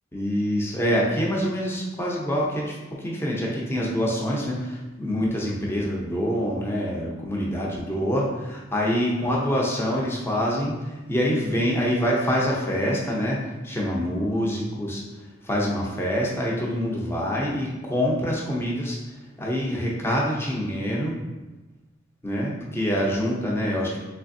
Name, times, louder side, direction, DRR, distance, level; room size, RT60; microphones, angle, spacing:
voice 1, 0.1-15.0 15.4-19.0 19.4-21.2 22.2-24.0, equal, 10° left, -3 dB, 0.5 m, -25 dB
3.3 x 3.3 x 2.6 m, 1.1 s
head